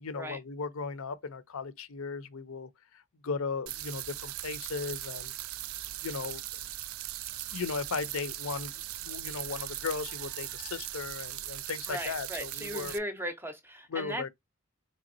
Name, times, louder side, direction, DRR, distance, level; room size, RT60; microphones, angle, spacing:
voice 1, 0.0-5.3 6.0-6.4 7.5-8.7 9.0-13.0 13.9-14.3, left 5 dB, 75° left, 0.6 m, -36 dB
sound 1, 3.7-13.0, right 14 dB, 75° right, 0.4 m, -39 dB
voice 2, 11.9-14.3, equal, 10° right, 0.5 m, -37 dB
4.0 x 3.3 x 2.6 m
head